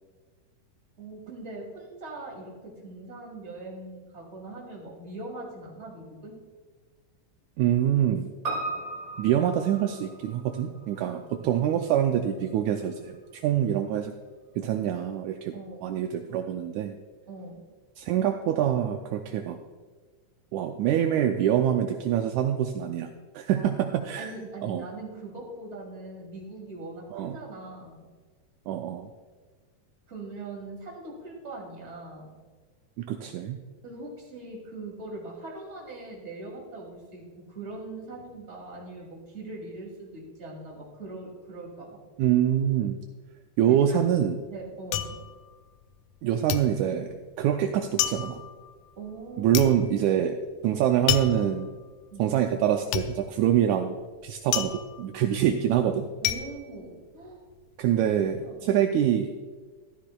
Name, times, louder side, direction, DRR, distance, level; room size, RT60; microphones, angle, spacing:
voice 1, 1.0-6.3 11.1-11.4 15.5-16.0 17.3-17.7 23.5-28.1 30.1-32.3 33.8-42.0 43.7-44.0 44.5-45.2 49.0-49.5 52.1-52.4 56.2-57.4 58.3-58.8, right 2 dB, 20° right, -2 dB, 2.4 m, -41 dB
voice 2, 7.6-8.3 9.2-14.1 14.5-15.5 15.8-16.9 18.0-19.6 20.5-24.3 24.6-24.8 27.1-27.4 28.7-29.1 33.0-33.6 42.2-43.0 43.6-44.4 46.2-48.4 49.4-50.4 50.6-51.7 52.2-53.9 54.2-56.1 57.8-59.3, right 10 dB, 85° right, 5 dB, 1.7 m, -25 dB
Piano, 8.4-13.0 13.2-13.3, right 2 dB, 40° right, 2.5 m, -38 dB
sound 1, 43.8-46.2 46.5-57.6 57.9-58.5, left 11 dB, 80° left, 1.8 m, -32 dB
13.0 x 13.0 x 2.3 m, 1.4 s
omnidirectional pair, 3.8 m